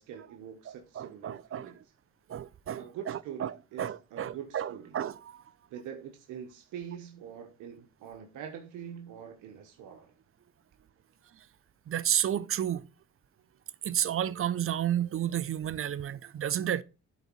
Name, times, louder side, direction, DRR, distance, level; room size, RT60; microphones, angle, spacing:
voice 1, 0.0-1.8 2.8-5.0 5.7-10.1, right 8 dB, 90° right, 1.2 m, -44 dB
voice 2, 0.7-1.7 2.3-5.4 11.3-11.5 11.9-12.9 13.8-16.8, right 10 dB, 45° right, 0.6 m, -32 dB
7.9 x 4.1 x 6.2 m
cardioid pair, 90°, 30 cm